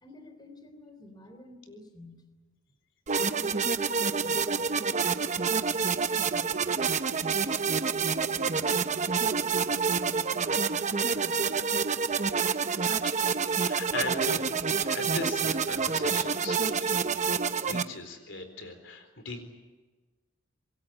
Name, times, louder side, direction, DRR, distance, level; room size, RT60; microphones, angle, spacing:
voice 1, 0.0-2.2 3.2-7.0 7.6-11.6, left 1 dB, 20° left, 6 dB, 3.6 m, -50 dB
sound 1, 3.1-17.8, right 5 dB, 35° right, 0.8 m, -28 dB
voice 2, 12.8-14.4 14.8-19.4, left 3 dB, 65° left, 7 dB, 4.2 m, -39 dB
26.0 x 22.0 x 8.8 m, 1.2 s
head